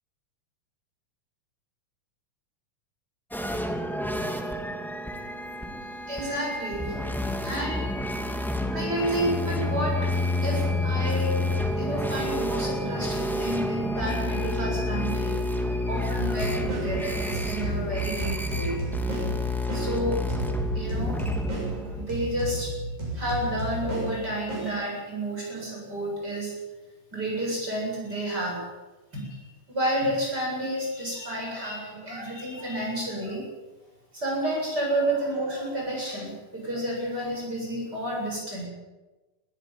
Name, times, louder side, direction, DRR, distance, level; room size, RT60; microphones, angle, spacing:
sound 1, 3.3-22.1, left 1 dB, ahead, 1.7 m, -29 dB
voice 1, 6.1-8.0 8.7-11.4 11.7-15.4 15.9-18.8 19.7-20.2 20.7-21.3 21.9-22.7 23.1-26.5 27.1-28.6 29.1-29.4 29.7-33.4 34.1-38.6, right 1 dB, 30° right, -2 dB, 8.6 m, -30 dB
sound 2, 16.1-25.2, right 1 dB, 65° right, 8.7 m, -33 dB
21.5 x 15.0 x 9.1 m, 1.1 s
omnidirectional pair, 3.7 m